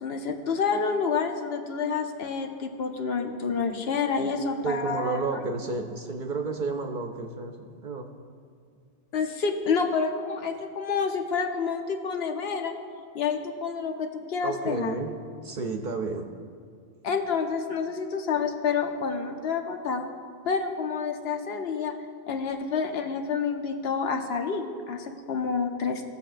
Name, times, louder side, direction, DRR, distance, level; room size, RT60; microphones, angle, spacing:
voice 1, 0.0-5.4 9.1-12.7 13.1-15.0 17.0-20.1 20.4-21.9 22.3-26.0, left 5 dB, 65° left, 4 dB, 0.9 m, -28 dB
voice 2, 4.6-8.1 14.4-16.3, right 4 dB, 55° right, 3 dB, 0.6 m, -31 dB
17.0 x 6.7 x 2.5 m, 2.2 s
omnidirectional pair, 1.2 m